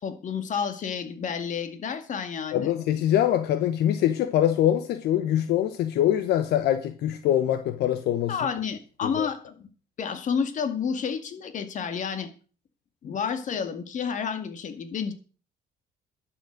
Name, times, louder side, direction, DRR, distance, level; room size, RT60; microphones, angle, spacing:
voice 1, 0.0-2.7 8.3-9.7 10.0-12.3 13.0-15.1, left 6 dB, 50° left, 2.2 m, -30 dB
voice 2, 2.5-8.3 9.0-9.3 13.0-13.1, left 11 dB, 80° left, 1.1 m, -24 dB
12.0 x 7.4 x 6.6 m
cardioid pair, 110°, 17 cm